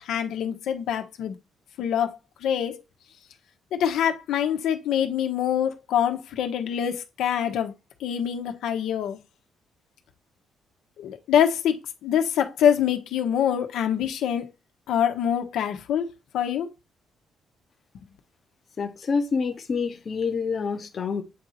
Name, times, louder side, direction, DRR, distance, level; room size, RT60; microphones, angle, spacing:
voice 1, 0.0-1.3 1.8-2.1 2.4-2.7 3.7-7.7 8.0-9.2 11.0-11.7 12.0-14.4 14.9-16.0 16.3-16.7, left 9 dB, 85° left, 1.3 m, -25 dB
voice 2, 18.8-21.2, left 5 dB, 35° left, 1.0 m, -27 dB
8.6 x 4.1 x 4.3 m
cardioid pair, 155°, 0 cm